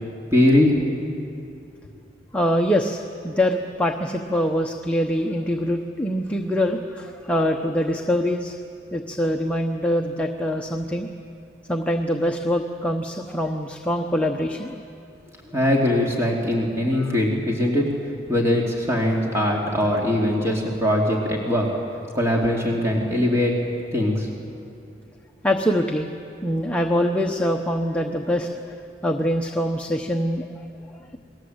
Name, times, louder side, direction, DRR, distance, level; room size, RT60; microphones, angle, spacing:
voice 1, 0.3-0.8 15.5-17.9 18.3-21.7 22.1-23.5 23.9-24.3, left 1 dB, 15° right, -2 dB, 2.8 m, -21 dB
voice 2, 2.3-8.6 8.9-11.1 11.7-14.8 16.9-17.1 25.4-26.1 26.4-30.7, equal, 5° left, 2 dB, 0.9 m, -24 dB
28.5 x 21.0 x 8.0 m, 2.6 s
head